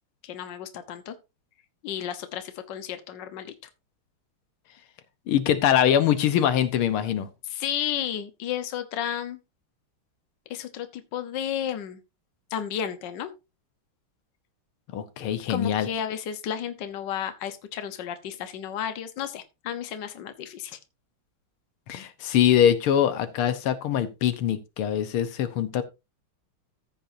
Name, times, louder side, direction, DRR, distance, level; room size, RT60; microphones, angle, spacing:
voice 1, 0.2-1.1 1.8-3.5 7.5-9.4 10.5-12.0 12.5-13.3 15.5-20.8, left 9 dB, 65° left, 1.6 m, -32 dB
voice 2, 5.3-7.3 14.9-15.9 21.9-25.8, left 10 dB, 85° left, 1.8 m, -23 dB
14.5 x 7.8 x 2.6 m
omnidirectional pair, 2.3 m